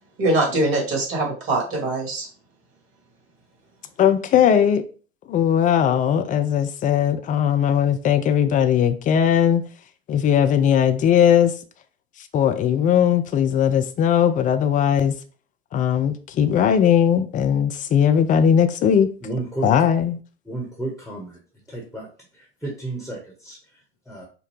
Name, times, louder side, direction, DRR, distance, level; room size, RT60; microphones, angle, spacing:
voice 1, 0.2-2.3, right 2 dB, 40° right, 2.4 m, -22 dB
voice 2, 4.0-4.8 5.3-9.6 10.1-11.5 12.2-15.1 15.7-19.1 19.6-20.2, left 9 dB, 25° left, 0.6 m, -19 dB
voice 3, 19.2-19.7 20.4-21.4 21.7-24.3, right 2 dB, ahead, 1.3 m, -33 dB
5.3 x 2.3 x 4.4 m
figure-of-eight pair, 90°, 34 cm